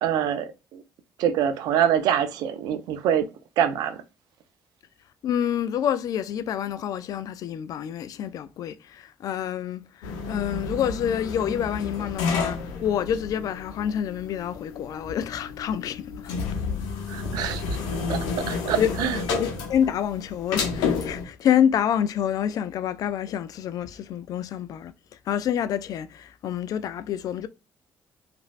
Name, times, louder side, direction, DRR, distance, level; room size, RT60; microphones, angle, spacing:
voice 1, 0.0-0.8 1.2-3.3 3.6-4.0 17.1-17.6 18.1-19.2, right 9 dB, 80° right, 0.5 m, -25 dB
voice 2, 5.2-16.3 18.8-18.9 19.4-24.9 25.3-27.5, left 9 dB, 65° left, 0.3 m, -27 dB
sound 1, 10.0-21.2, left 5 dB, 85° left, 0.7 m, -31 dB
3.0 x 2.5 x 2.4 m
supercardioid pair, 65°, 7 cm